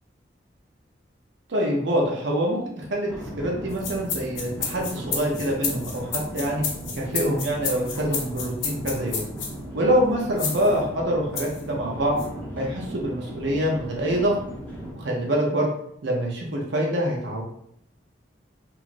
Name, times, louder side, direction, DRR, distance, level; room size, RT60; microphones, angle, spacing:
voice 1, 1.5-3.1 3.4-6.1 6.3-6.6 6.9-9.2 9.7-12.2 12.6-14.4 14.9-15.7 16.0-17.4, equal, 70° right, -1 dB, 0.6 m, -25 dB
sound 1, 3.1-14.9, right 1 dB, 10° left, 0.6 m, -37 dB
sound 2, 3.7-9.5 10.4-10.7 11.3-11.6 12.2-12.3, left 6 dB, 90° left, 0.6 m, -30 dB
3.0 x 2.4 x 2.5 m, 0.71 s
head